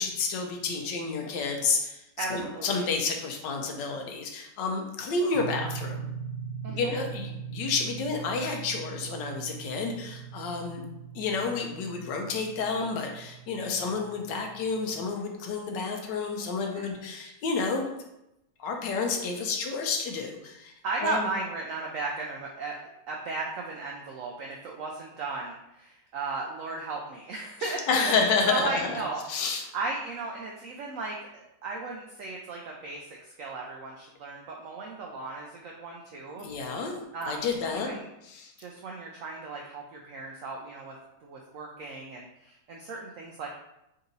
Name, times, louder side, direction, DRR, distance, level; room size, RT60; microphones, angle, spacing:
voice 1, 0.0-6.1 6.7-10.8 11.1-17.9 18.6-20.7 21.0-21.3 27.6-29.0 29.3-29.6 36.4-37.0 37.2-37.9 38.3-38.5, left 4 dB, 80° left, 3 dB, 1.3 m, -30 dB
voice 2, 2.2-2.9 6.6-7.0 16.7-16.9 20.8-22.8 23.1-28.1 28.5-29.4 29.7-36.5 37.1-38.1 38.6-40.9 41.2-43.5, right 3 dB, 80° right, -1 dB, 0.7 m, -36 dB
sound 1, 5.3-15.1, right 7 dB, 60° right, 1.0 m, -41 dB
4.0 x 2.7 x 3.9 m, 0.86 s
omnidirectional pair, 1.9 m